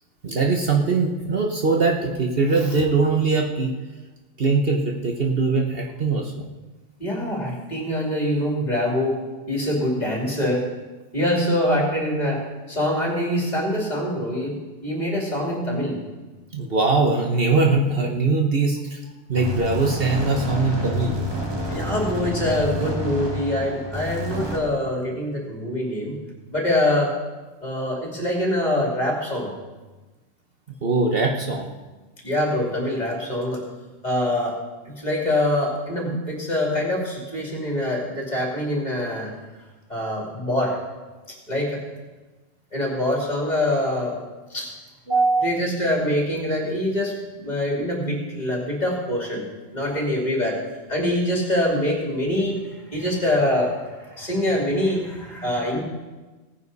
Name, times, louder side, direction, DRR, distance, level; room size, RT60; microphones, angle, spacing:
voice 1, 0.2-3.7 4.4-6.3 16.5-19.0 19.3-21.2 30.8-31.7 45.1-45.5, right 3 dB, 50° right, 1 dB, 1.2 m, -21 dB
voice 2, 7.0-9.2 9.5-10.6 11.1-12.4 12.7-14.5 14.8-16.0 21.7-26.1 26.5-27.1 27.6-29.5 32.2-33.6 34.0-34.6 34.9-39.3 39.9-40.8 41.5-41.8 42.7-44.2 44.5-44.7 45.4-49.4 49.7-50.6 50.9-52.6 52.9-55.8, left 1 dB, 35° left, -2 dB, 2.9 m, -24 dB
sound 1, 19.3-24.6, left 1 dB, 20° right, 1.7 m, -29 dB
17.5 x 9.8 x 4.1 m, 1.2 s
omnidirectional pair, 1.3 m